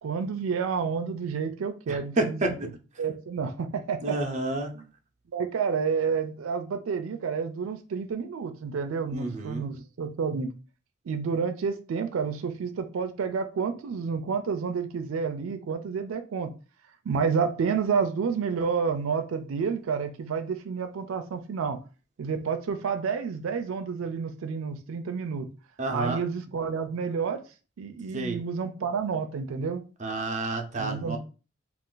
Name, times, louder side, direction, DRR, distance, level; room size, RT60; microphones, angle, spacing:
voice 1, 0.0-2.7 3.0-4.2 5.3-10.5 11.1-16.5 17.1-21.8 22.2-25.5 25.9-27.4 27.8-29.8 30.8-31.2, right 5 dB, 90° right, 0.4 m, -29 dB
voice 2, 1.9-2.7 4.0-4.7 9.1-9.7 25.8-26.2 28.1-28.4 30.0-31.2, right 2 dB, 35° right, 0.5 m, -30 dB
2.4 x 2.3 x 3.7 m
head